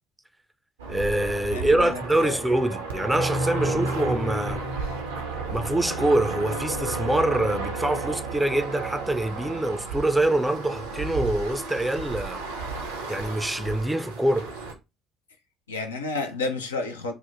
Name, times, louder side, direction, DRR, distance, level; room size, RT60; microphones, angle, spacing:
sound 1, 0.8-14.7, right 4 dB, 85° right, 0.6 m, -33 dB
voice 1, 0.9-4.6 5.5-12.4 13.1-14.5, right 1 dB, 10° right, 0.4 m, -25 dB
voice 2, 1.5-2.4 3.6-3.9 15.7-17.1, left 3 dB, 85° left, 0.4 m, -31 dB
sound 2, 3.0-5.8, left 1 dB, 35° left, 0.8 m, -32 dB
3.5 x 2.1 x 2.9 m
figure-of-eight pair, 55°, 0 cm